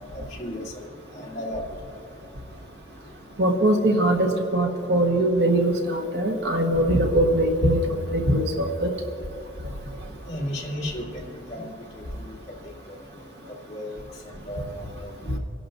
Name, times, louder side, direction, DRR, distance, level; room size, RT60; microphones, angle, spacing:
voice 1, 1.2-1.6 10.3-11.0 11.5-11.6 13.7-14.0 14.5-14.6 15.3-15.4, left 1 dB, 35° left, -4 dB, 2.4 m, -32 dB
voice 2, 3.4-7.8 8.1-8.9, right 1 dB, 70° right, 2 dB, 1.3 m, -21 dB
28.5 x 11.5 x 2.6 m, 2.7 s
head